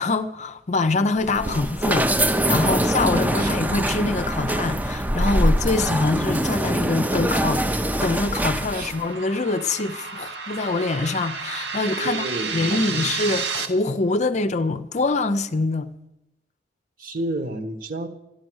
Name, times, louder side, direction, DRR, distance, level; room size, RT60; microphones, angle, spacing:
voice 1, 0.0-2.1 2.5-7.7 8.0-12.3 12.5-15.9, left 3 dB, 40° left, 0.6 m, -24 dB
sound 1, 1.2-9.0, right 1 dB, 10° right, 0.6 m, -23 dB
sound 2, 6.2-13.7, right 5 dB, 70° right, 1.3 m, -32 dB
voice 2, 11.9-13.1 17.0-18.1, right 2 dB, 50° right, 1.4 m, -31 dB
13.0 x 11.5 x 6.3 m
head